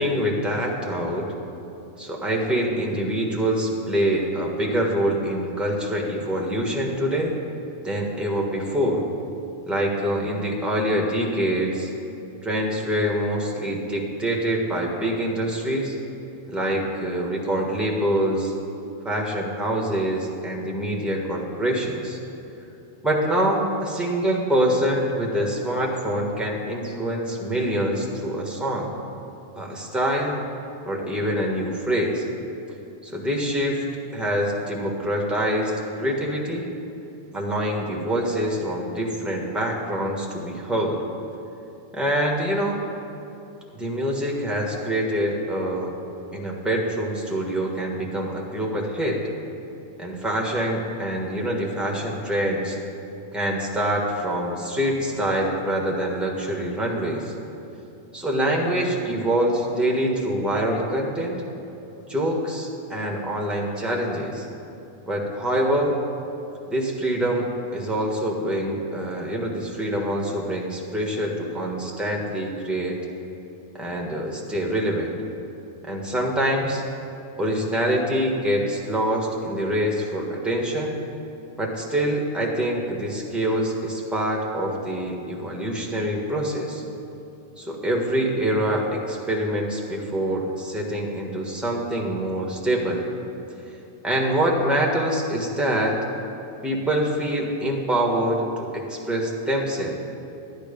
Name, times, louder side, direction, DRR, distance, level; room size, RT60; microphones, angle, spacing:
voice 1, 0.0-1.3 2.0-7.4 7.8-9.0 9.7-11.9 12.4-16.0 16.5-18.5 19.0-22.2 23.0-28.9 29.6-30.4 30.8-32.2 33.0-33.8 34.1-36.7 37.3-41.0 41.9-42.9 43.7-45.9 46.3-49.2 50.0-52.8 53.3-57.3 58.1-61.4 62.1-64.5 65.1-65.9 66.7-73.0 73.7-75.1 75.8-76.8 77.4-81.0 81.6-86.8 87.6-93.0 94.0-96.0 96.6-100.0, right 1 dB, ahead, -1 dB, 1.3 m, -25 dB
12.5 x 9.2 x 5.2 m, 2.9 s
omnidirectional pair, 1.6 m